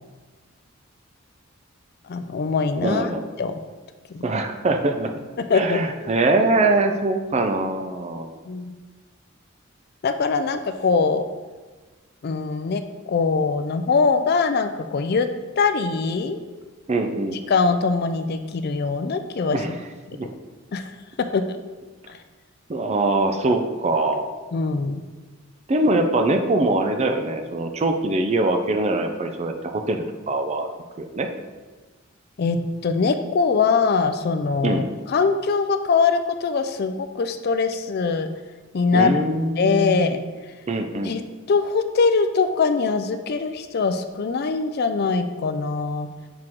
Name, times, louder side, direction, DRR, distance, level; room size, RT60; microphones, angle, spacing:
voice 1, 2.1-3.1 3.4-3.6 4.1-4.3 5.5-5.8 8.5-8.7 10.0-11.3 12.2-15.3 15.6-16.4 17.3-19.6 20.2-20.3 20.7-20.9 21.2-21.6 22.1-22.2 24.5-25.0 32.4-38.3 38.7-39.2 39.6-40.2 41.0-41.2 41.5-46.1, left 4 dB, 50° left, 9 dB, 0.4 m, -22 dB
voice 2, 2.8-3.2 4.2-5.1 5.5-8.3 16.9-17.4 19.5-19.7 20.1-20.3 22.7-24.3 25.7-30.7 31.0-31.3 34.6-34.9 38.9-40.1 40.7-41.1, right 2 dB, 30° right, 6 dB, 0.5 m, -23 dB
6.0 x 4.8 x 3.7 m, 1.3 s
head